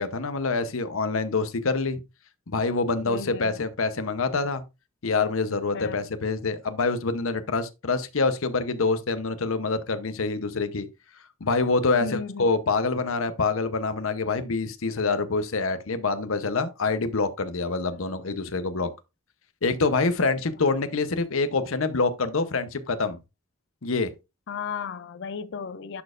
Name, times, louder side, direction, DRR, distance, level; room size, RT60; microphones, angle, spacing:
voice 1, 0.0-2.0 2.5-4.6 5.0-10.9 11.4-18.9 19.6-23.2 23.8-24.1, left 3 dB, 75° left, 0.8 m, -26 dB
voice 2, 3.0-3.6 5.7-6.0 12.0-12.5 17.8-18.0 24.5-26.0, left 5 dB, 60° left, 0.4 m, -35 dB
11.5 x 4.2 x 2.5 m
head